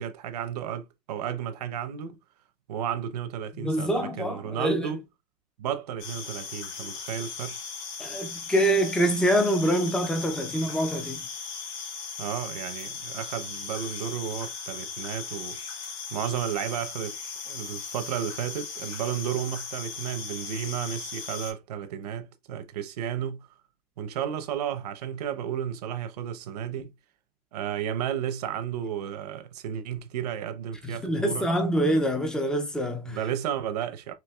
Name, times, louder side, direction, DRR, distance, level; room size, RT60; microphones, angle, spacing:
voice 1, 0.0-2.2 2.7-5.0 5.6-7.6 12.2-15.6 16.1-17.2 17.5-23.5 24.0-26.9 27.5-31.5 33.0-34.1, right 9 dB, 75° right, 0.8 m, -33 dB
voice 2, 3.6-5.0 8.0-11.3 30.9-33.2, right 1 dB, 5° left, 0.4 m, -25 dB
sound 1, 6.0-21.5, left 5 dB, 60° left, 1.9 m, -38 dB
4.6 x 2.9 x 2.3 m
supercardioid pair, 150°, 20 cm